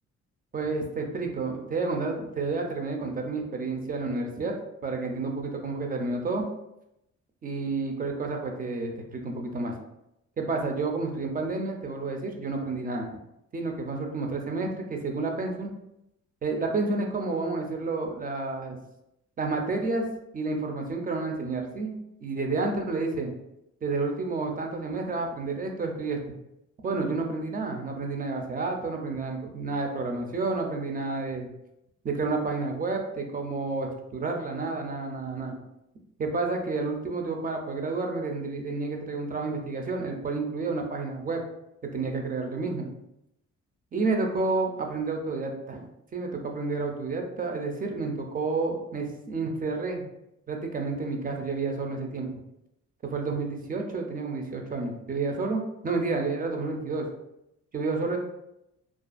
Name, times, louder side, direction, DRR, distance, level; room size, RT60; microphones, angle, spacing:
voice 1, 0.5-4.5 4.8-6.4 7.4-9.7 10.4-13.2 13.5-15.7 16.4-18.8 19.4-20.0 20.3-23.3 23.8-26.2 26.8-31.5 32.0-35.5 36.2-41.4 41.8-42.9 43.9-50.1 50.5-52.3 53.0-57.1 57.7-58.2, right 3 dB, 30° right, 2 dB, 0.5 m, -30 dB
2.4 x 2.3 x 2.4 m, 0.84 s
cardioid pair, 90°, 30 cm